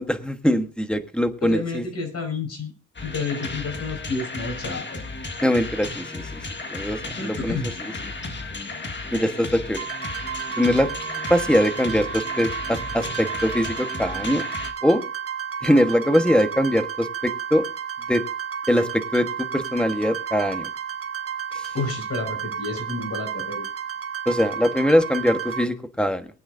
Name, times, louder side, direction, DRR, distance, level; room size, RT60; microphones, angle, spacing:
voice 1, 0.0-1.8 5.4-6.3 6.7-7.6 9.1-9.8 10.6-10.9 11.3-14.4 14.8-15.0 15.6-17.6 18.1-18.2 18.7-20.7 21.5-21.7 24.2-26.3, equal, 5° left, 8 dB, 1.3 m, -22 dB
voice 2, 1.4-2.7 3.0-5.0 7.1-7.7 21.7-23.6, left 3 dB, 50° left, 5 dB, 5.1 m, -30 dB
sound 1, 2.9-14.7, left 3 dB, 35° left, 1.7 m, -34 dB
sound 2, 9.8-25.6, right 8 dB, 45° right, 1.4 m, -32 dB
22.5 x 9.1 x 2.6 m, 0.35 s
wide cardioid pair, 115°, 31 cm